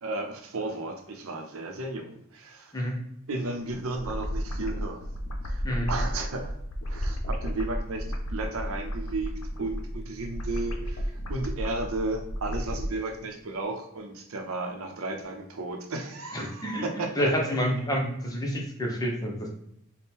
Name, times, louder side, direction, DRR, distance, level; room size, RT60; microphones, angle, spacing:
voice 1, 0.0-2.9 3.3-5.1 5.4-6.5 6.8-9.3 9.6-17.3, right 2 dB, 80° right, 3 dB, 0.7 m, -34 dB
sound 1, 3.9-12.9, equal, 75° left, 0.6 m, -33 dB
voice 2, 16.3-16.9 17.2-19.5, equal, 15° left, 0 dB, 0.6 m, -28 dB
3.6 x 2.2 x 4.3 m, 0.77 s
head